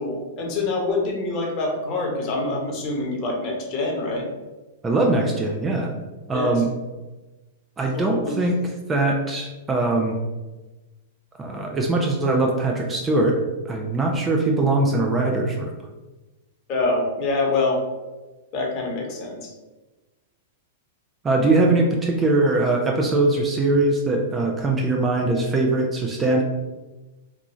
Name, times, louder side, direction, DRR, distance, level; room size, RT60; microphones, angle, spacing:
voice 1, 0.0-4.3 6.3-6.6 7.9-8.4 16.7-17.8 18.5-19.5, left 2 dB, 40° left, -1 dB, 1.0 m, -25 dB
voice 2, 4.8-5.9 6.3-6.7 7.8-8.6 8.9-10.2 11.4-15.7 21.2-26.4, right 2 dB, 15° right, 0 dB, 0.5 m, -21 dB
3.6 x 2.4 x 3.1 m, 1.1 s
hypercardioid pair, 120°, 0 cm